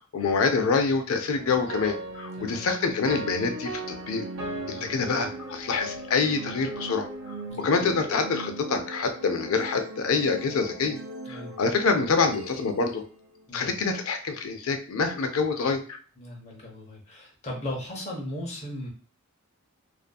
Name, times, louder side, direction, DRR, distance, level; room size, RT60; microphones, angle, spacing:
voice 1, 0.0-4.2 4.7-7.1 7.6-11.0 11.3-13.0 13.5-16.0, left 4 dB, 70° left, 6 dB, 0.4 m, -26 dB
sound 1, 1.4-13.6, right 2 dB, 70° right, 0.6 m, -38 dB
voice 2, 2.4-2.7 4.7-5.0 7.5-7.9 11.3-11.6 13.5-13.8 16.2-18.9, left 1 dB, 30° left, -2 dB, 0.7 m, -37 dB
2.5 x 2.5 x 2.2 m, 0.41 s
head